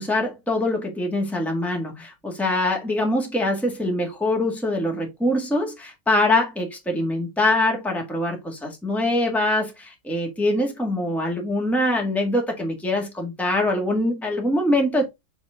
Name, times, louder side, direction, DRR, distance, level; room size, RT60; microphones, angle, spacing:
voice 1, 0.0-15.1, left 1 dB, ahead, 1.7 m, -23 dB
7.1 x 3.6 x 3.6 m
omnidirectional pair, 1.6 m